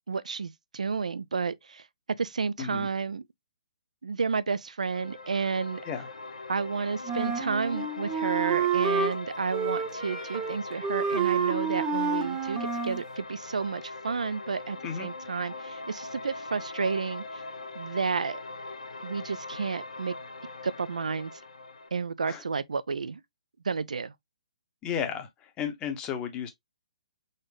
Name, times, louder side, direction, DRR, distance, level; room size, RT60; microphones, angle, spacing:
voice 1, 0.1-1.9 2.2-3.2 4.0-5.8 6.5-17.2 17.7-18.4 19.0-20.1 20.6-21.3 21.9-23.2 23.6-24.1, right 5 dB, 80° right, 0.4 m, -31 dB
sound 1, 4.9-21.9, left 3 dB, 75° left, 1.0 m, -41 dB
Wind instrument woodwind instrument, 7.1-9.2 9.5-10.6 10.8-13.0, right 6 dB, 15° right, 0.9 m, -29 dB
voice 2, 24.8-26.5, left 8 dB, 20° left, 0.9 m, -33 dB
4.0 x 2.5 x 3.4 m
hypercardioid pair, 140°, 4 cm